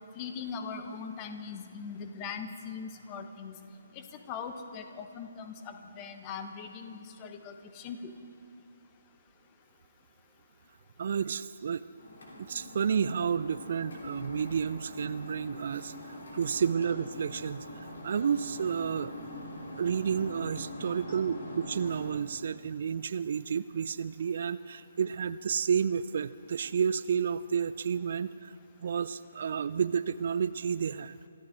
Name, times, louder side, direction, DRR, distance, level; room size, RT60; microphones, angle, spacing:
voice 1, 0.1-3.6 3.9-8.1 21.1-21.3, left 6 dB, 25° left, 7 dB, 1.2 m, -41 dB
voice 2, 11.0-11.8 12.4-19.1 19.8-28.5 28.8-31.2, right 7 dB, 50° right, 15 dB, 0.4 m, -31 dB
sound 1, 12.0-22.2, left 1 dB, 60° left, 3.3 m, -44 dB
26.5 x 14.0 x 3.7 m, 2.4 s
figure-of-eight pair, 135°, 0 cm